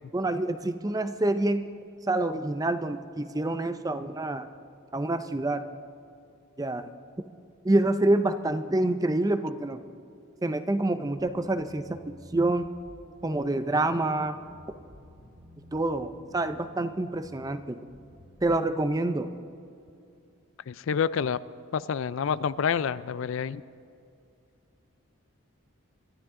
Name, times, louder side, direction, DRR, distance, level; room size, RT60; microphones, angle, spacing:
voice 1, 0.1-1.6 2.1-4.5 4.9-5.6 6.6-6.8 7.6-9.8 10.4-12.0 12.3-12.7 13.2-14.4 15.7-17.8 18.4-19.3, right 2 dB, 15° right, 10 dB, 0.5 m, -27 dB
sound 1, 11.2-18.6, equal, 40° right, 3.2 m, -53 dB
voice 2, 20.7-21.4 21.7-23.6, left 7 dB, 65° left, 17 dB, 0.4 m, -28 dB
25.5 x 12.5 x 3.7 m, 2.5 s
head